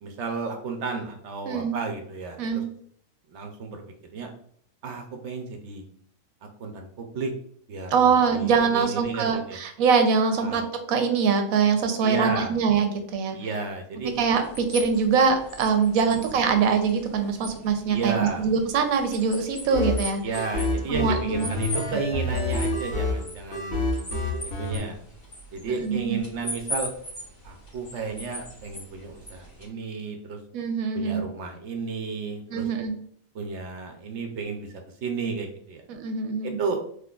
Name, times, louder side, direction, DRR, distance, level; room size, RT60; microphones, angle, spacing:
voice 1, 0.0-2.6 3.3-3.8 4.1-4.3 4.8-5.8 6.6-7.3 7.7-9.6 10.4-10.6 12.0-12.5 13.3-14.1 16.1-16.3 17.9-18.5 20.2-23.8 24.4-25.0 25.5-26.9 27.4-30.4 30.9-32.7 33.3-34.7 35.0-35.8 36.4-36.8, right 4 dB, 65° right, 4 dB, 0.8 m, -32 dB
voice 2, 1.5-1.8 2.4-2.6 7.9-10.6 10.9-13.4 14.0-20.2 20.9-21.5 25.8-26.2 30.5-31.2 32.5-33.0 35.9-36.6, right 5 dB, 90° right, 6 dB, 1.1 m, -23 dB
sound 1, 14.0-29.7, equal, 60° left, 1.9 m, -40 dB
sound 2, 19.7-24.8, left 2 dB, 80° left, 1.4 m, -28 dB
3.7 x 3.1 x 2.3 m, 0.63 s
omnidirectional pair, 1.4 m